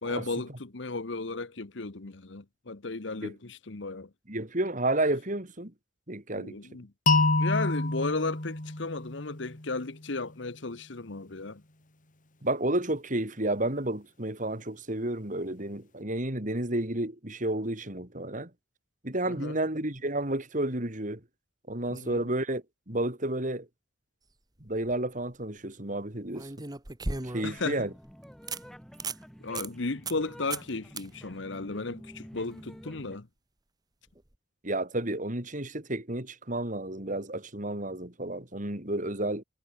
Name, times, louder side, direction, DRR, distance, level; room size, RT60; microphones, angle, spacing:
voice 1, 0.0-4.1 6.3-6.9 7.4-11.6 19.3-19.6 21.9-22.2 27.4-27.9 29.4-33.3, left 3 dB, 65° left, 1.1 m, -35 dB
voice 2, 4.3-5.7 6.1-6.6 12.4-18.5 19.0-21.2 21.7-23.7 24.6-26.5 27.2-27.9 34.6-39.4, right 1 dB, 40° right, 3.7 m, -31 dB
sound 1, 7.1-10.0, left 2 dB, 45° left, 2.9 m, -27 dB
sound 2, 24.6-24.9 26.3-27.6 28.1-28.2 28.5-28.6 28.9-29.2 29.6-29.7 30.1-30.2 30.5-30.7 31.0-31.1 34.2-34.3, right 3 dB, 20° right, 1.4 m, -36 dB
sound 3, 27.5-33.2, equal, ahead, 3.7 m, -49 dB
head